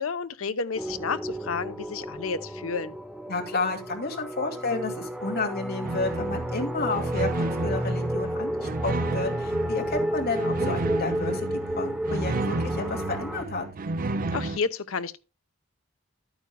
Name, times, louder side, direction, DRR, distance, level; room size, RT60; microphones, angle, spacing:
voice 1, 0.0-3.0 14.3-15.2, left 5 dB, 80° left, 0.7 m, -31 dB
sound 1, 0.7-13.4, right 1 dB, 5° right, 0.8 m, -32 dB
voice 2, 3.3-13.7, left 3 dB, 50° left, 2.4 m, -31 dB
sound 2, 5.8-14.6, right 2 dB, 45° right, 0.5 m, -32 dB
12.0 x 8.9 x 2.2 m
head